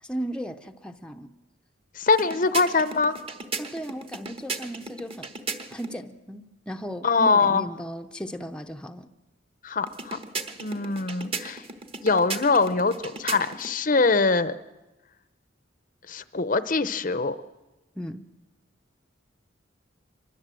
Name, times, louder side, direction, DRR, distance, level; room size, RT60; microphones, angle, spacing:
voice 1, 0.0-1.3 3.6-5.3 5.7-9.1 18.0-18.2, equal, 5° left, 4 dB, 0.7 m, -36 dB
voice 2, 2.0-3.2 7.0-7.7 9.6-10.2 10.6-11.6 12.0-14.5 16.1-17.4, left 4 dB, 40° left, 13 dB, 0.7 m, -23 dB
sound 1, 2.1-6.0 9.9-13.8, right 4 dB, 30° right, 1.3 m, -36 dB
24.5 x 22.0 x 7.7 m, 1.1 s
head